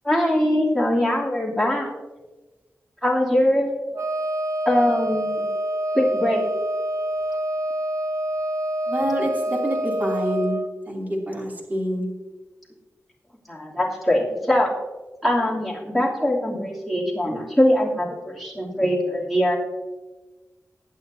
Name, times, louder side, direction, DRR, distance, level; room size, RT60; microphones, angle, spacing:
voice 1, 0.0-1.9 3.0-3.7 4.6-5.5 5.9-6.4 13.5-14.7 15.2-19.6, left 1 dB, ahead, -4 dB, 2.8 m, -22 dB
Wind instrument woodwind instrument, 3.9-10.7, right 1 dB, 80° right, 0.9 m, -26 dB
voice 2, 8.9-12.1, equal, 35° right, -2 dB, 2.8 m, -27 dB
20.5 x 8.5 x 2.7 m, 1.2 s
wide cardioid pair, 135°, 5 cm